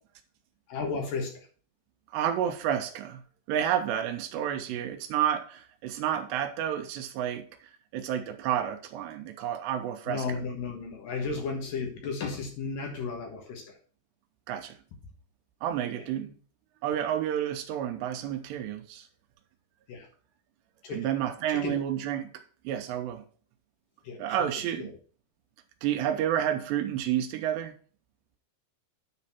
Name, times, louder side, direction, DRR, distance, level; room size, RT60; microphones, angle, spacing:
voice 1, 0.7-1.5 10.1-13.8 15.9-16.1 19.9-20.1 20.8-21.1 21.5-21.8 24.0-24.4 24.8-24.9, left 4 dB, 60° left, 2 dB, 2.6 m, -34 dB
voice 2, 2.1-3.2 3.5-7.4 7.9-10.4 14.5-14.8 15.6-16.3 16.8-19.1 20.9-22.3 22.6-23.2 24.2-24.9 25.8-27.7, right 10 dB, 85° right, 8 dB, 2.8 m, -30 dB
9.9 x 4.3 x 5.7 m, 0.42 s
omnidirectional pair, 5.1 m